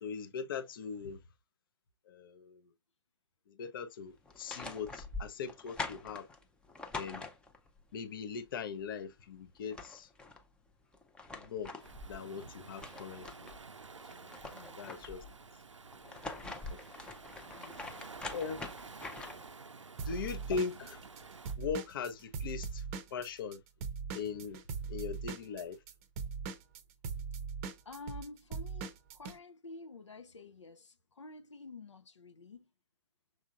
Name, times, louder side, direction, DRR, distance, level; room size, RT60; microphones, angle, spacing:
voice 1, 0.0-1.2 2.1-2.7 3.5-6.3 6.9-7.3 7.9-10.1 11.3-11.7 12.1-13.5 14.1-14.3 14.8-15.2 16.7-16.8 18.3-18.6 20.0-21.0 21.6-22.8 23.1-23.6 24.1-24.6 24.9-25.8, left 6 dB, 50° left, 0.8 m, -40 dB
sound 1, 4.3-7.8 9.2-9.3 9.6-10.4 10.9-13.6 14.0-15.3 15.9-19.5, left 3 dB, 5° left, 0.6 m, -44 dB
Waves surf, 11.8-21.6, right 4 dB, 85° right, 0.5 m, -51 dB
voice 2, 14.5-14.8 17.6-17.8 18.2-18.5 27.8-32.7, left 3 dB, 75° left, 0.7 m, -50 dB
Drum kit / Drum, 20.0-23.6 23.8-29.4, right 5 dB, 30° right, 0.7 m, -40 dB
6.2 x 3.6 x 2.4 m
figure-of-eight pair, 125°, 15 cm